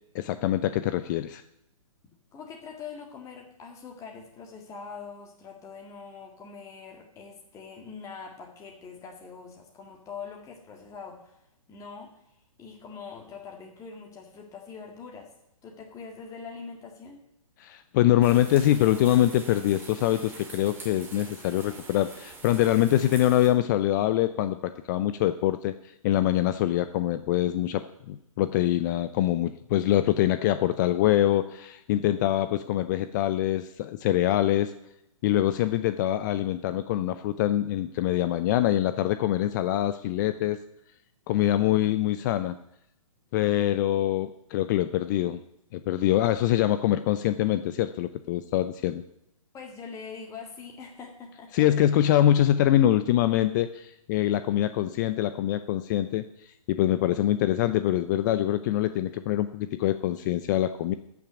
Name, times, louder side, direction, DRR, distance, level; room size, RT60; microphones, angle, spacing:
voice 1, 0.1-1.4 17.6-34.7 35.2-40.6 41.3-42.6 43.3-45.4 45.7-49.0 51.5-60.9, left 13 dB, 35° left, 12 dB, 0.5 m, -24 dB
voice 2, 2.3-11.4 11.7-12.1 12.6-15.3 15.6-17.2 49.5-51.5, left 5 dB, 15° left, 1 dB, 1.9 m, -43 dB
sound 1, 18.2-23.5, right 3 dB, 10° right, 2.3 m, -45 dB
14.0 x 6.1 x 8.0 m, 0.81 s
hypercardioid pair, 130°, 18 cm